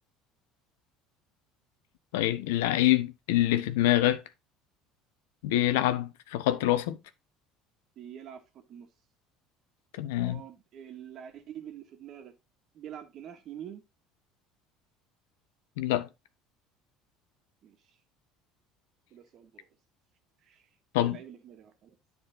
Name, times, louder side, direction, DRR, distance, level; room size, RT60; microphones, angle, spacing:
voice 1, 2.1-4.2 5.4-7.0 10.0-10.4 15.8-16.1 20.9-21.2, left 14 dB, 75° left, 0.9 m, -25 dB
voice 2, 8.0-8.9 10.2-12.3 12.7-13.8 17.6-17.8 19.1-19.7 20.4-20.6 21.0-21.9, right 9 dB, 55° right, 1.8 m, -46 dB
10.0 x 4.4 x 4.0 m
hypercardioid pair, 70°, 0 cm